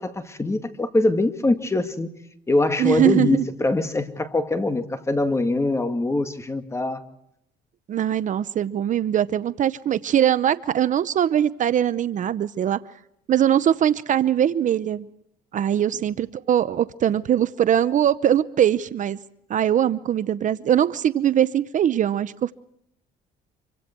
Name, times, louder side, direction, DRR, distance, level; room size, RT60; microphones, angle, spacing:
voice 1, 0.0-2.1 2.5-7.0, left 2 dB, 15° left, 2.1 m, -23 dB
voice 2, 2.8-3.4 7.9-12.8 13.3-15.1 15.5-19.2 19.5-22.5, right 10 dB, 50° right, 0.8 m, -21 dB
26.5 x 24.5 x 4.5 m
cardioid pair, 110°, 17 cm